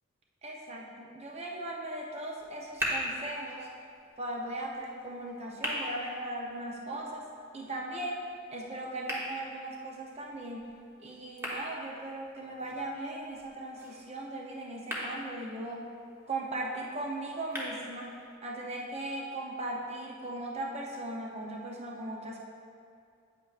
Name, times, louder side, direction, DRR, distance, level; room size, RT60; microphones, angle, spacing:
voice 1, 0.4-3.7 4.2-7.3 7.5-8.2 8.5-10.7 11.0-15.9 16.3-22.4, right 1 dB, 30° right, -1 dB, 0.6 m, -38 dB
sound 1, 2.4-18.4, equal, 10° right, 1.1 m, -42 dB
9.2 x 8.6 x 2.4 m, 2.4 s
head